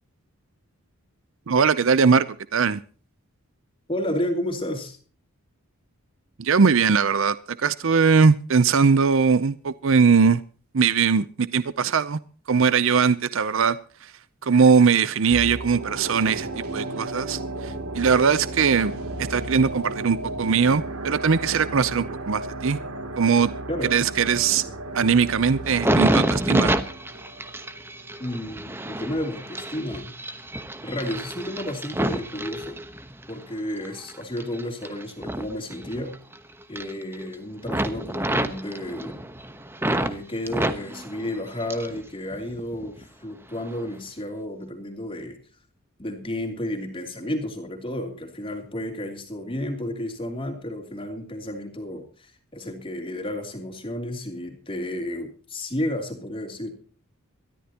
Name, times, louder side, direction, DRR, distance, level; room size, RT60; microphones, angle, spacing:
voice 1, 1.5-2.8 6.4-10.4 10.7-12.2 12.5-14.1 14.4-22.8 23.2-23.5 23.8-24.6 24.9-26.7, right 5 dB, 60° right, 0.5 m, -20 dB
voice 2, 3.9-5.0 23.7-23.9 28.2-30.1 30.8-32.8 33.3-36.1 36.7-39.2 39.8-45.4 46.0-56.7, left 1 dB, 25° left, 3.0 m, -32 dB
sound 1, 15.3-28.4 28.7-28.8, right 1 dB, 80° right, 2.7 m, -34 dB
sound 2, 25.6-33.3 33.8-36.4 36.6-37.3 37.6-40.1 40.5-42.0 42.3-43.0 43.6-43.8, right 1 dB, 10° right, 1.0 m, -28 dB
22.5 x 13.5 x 2.9 m
head